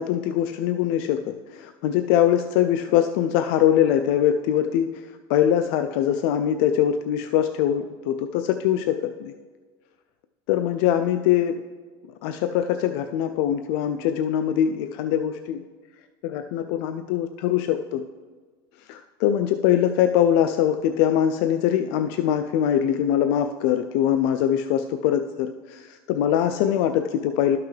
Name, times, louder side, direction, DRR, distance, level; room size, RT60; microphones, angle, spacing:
voice 1, 0.0-9.3 10.5-11.6 12.2-15.6 16.2-18.0 18.9-27.6, left 10 dB, 70° left, 8 dB, 0.4 m, -22 dB
12.5 x 5.9 x 3.3 m, 1.4 s
supercardioid pair, 110°, 13 cm